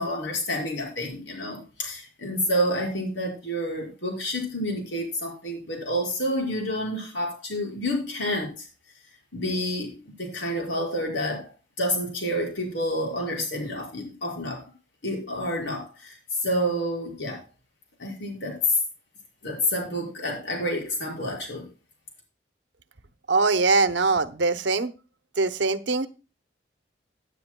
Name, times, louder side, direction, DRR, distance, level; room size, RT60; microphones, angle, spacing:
voice 1, 0.0-8.7 9.3-14.6 15.0-17.4 18.0-18.6 19.4-21.7, equal, 75° left, 5.5 m, -29 dB
voice 2, 23.3-24.9 25.4-26.1, right 3 dB, 75° right, 0.8 m, -22 dB
17.0 x 9.3 x 2.3 m
head